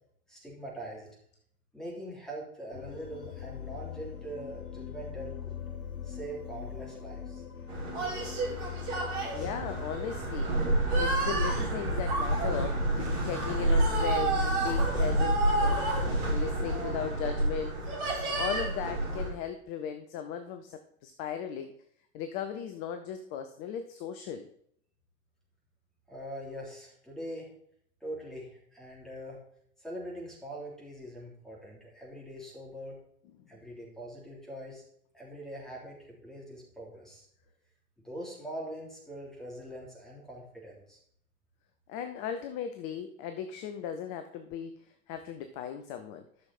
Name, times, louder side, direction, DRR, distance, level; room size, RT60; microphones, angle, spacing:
voice 1, 0.3-1.1 1.7-5.4 6.0-7.4 26.1-27.5 28.0-29.4 29.8-33.0 33.5-34.8 35.1-37.3 38.0-41.0, right 1 dB, ahead, -4 dB, 3.5 m, -42 dB
sound 1, 2.7-17.2, left 7 dB, 75° left, 0.9 m, -42 dB
sound 2, 7.7-19.3, right 1 dB, 55° right, 4.4 m, -29 dB
voice 2, 9.3-10.5 10.9-15.8 16.2-17.8 18.4-21.7 22.1-24.5 41.9-46.2, left 8 dB, 20° left, 8 dB, 0.3 m, -37 dB
12.5 x 6.2 x 4.2 m, 0.68 s
figure-of-eight pair, 90°, 42 cm